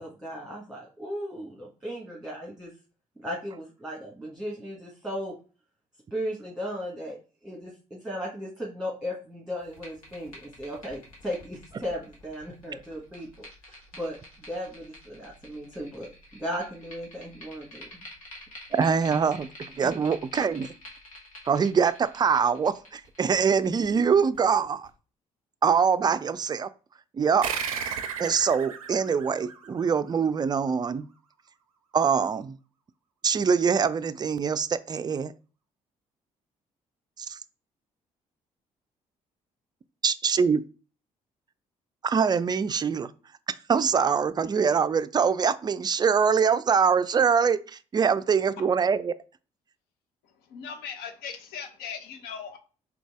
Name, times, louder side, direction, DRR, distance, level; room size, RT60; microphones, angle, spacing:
voice 1, 0.0-2.7 3.2-5.3 6.1-18.0 19.8-19.9, equal, 5° right, 1.5 m, -36 dB
sound 1, 9.6-24.9, left 1 dB, 85° left, 1.1 m, -49 dB
voice 2, 18.7-19.5 19.7-20.7 21.5-24.9 25.6-26.7 27.1-27.5 28.2-31.1 31.9-32.6 33.2-35.3 37.2-37.4 40.0-40.6 42.0-43.1 43.5-49.1, right 6 dB, 25° right, 0.4 m, -24 dB
sound 2, 27.4-30.4, right 7 dB, 85° right, 0.4 m, -34 dB
voice 3, 50.2-52.6, left 7 dB, 65° left, 0.7 m, -39 dB
3.8 x 2.9 x 3.6 m
figure-of-eight pair, 45°, 18 cm